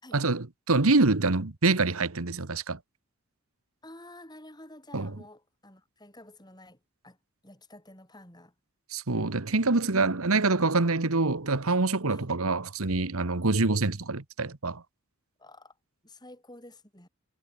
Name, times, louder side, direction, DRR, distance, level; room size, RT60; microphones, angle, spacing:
voice 1, 0.0-2.8 4.9-5.1 8.9-14.8, right 3 dB, 75° right, 1.4 m, -25 dB
voice 2, 3.8-7.2 7.4-8.5 12.1-12.3 15.4-15.8 16.0-17.1, left 1 dB, 20° left, 6.6 m, -50 dB
head